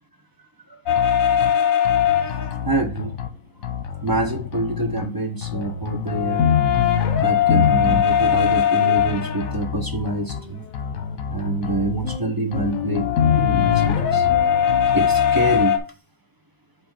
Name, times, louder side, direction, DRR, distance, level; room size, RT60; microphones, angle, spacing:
sound 1, 0.9-3.3 3.6-5.1 5.4-15.8, left 8 dB, 80° left, 1.3 m, -21 dB
voice 1, 2.6-3.1 4.0-6.5 7.2-10.6 11.3-13.1 13.3-14.3 14.9-15.7, right 2 dB, 20° right, 0.8 m, -26 dB
5.9 x 3.4 x 5.1 m
omnidirectional pair, 1.4 m